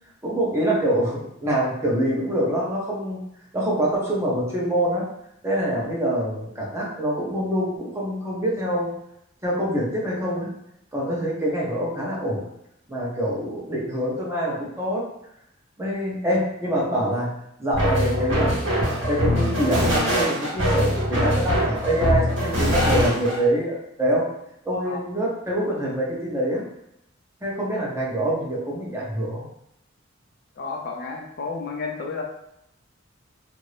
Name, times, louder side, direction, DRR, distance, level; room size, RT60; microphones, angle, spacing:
voice 1, 0.2-3.2 3.5-5.1 5.4-8.9 9.4-10.5 10.9-12.5 12.9-15.0 15.8-17.3 17.6-24.3 24.6-26.6 27.4-29.4, right 1 dB, 15° right, -5 dB, 0.8 m, -25 dB
sound 1, 17.7-23.4, equal, 75° right, 1.2 m, -22 dB
voice 2, 30.6-32.2, left 4 dB, 55° left, 1 dB, 0.4 m, -31 dB
2.7 x 2.6 x 3.2 m, 0.78 s
head